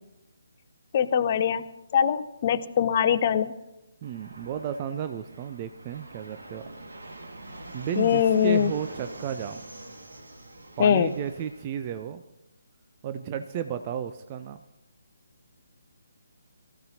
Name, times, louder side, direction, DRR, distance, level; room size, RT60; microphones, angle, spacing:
voice 1, 0.9-1.7 1.9-3.5 8.0-8.7 10.8-11.1, left 8 dB, 35° left, 11 dB, 0.8 m, -22 dB
voice 2, 4.0-6.7 7.7-9.6 10.8-12.2 13.0-14.6, right 8 dB, 25° right, 9 dB, 0.5 m, -33 dB
Fixed-wing aircraft airplane, 4.0-11.6, right 2 dB, 65° right, 2.0 m, -44 dB
23.5 x 15.0 x 2.8 m, 0.94 s
figure-of-eight pair, 140°, 0 cm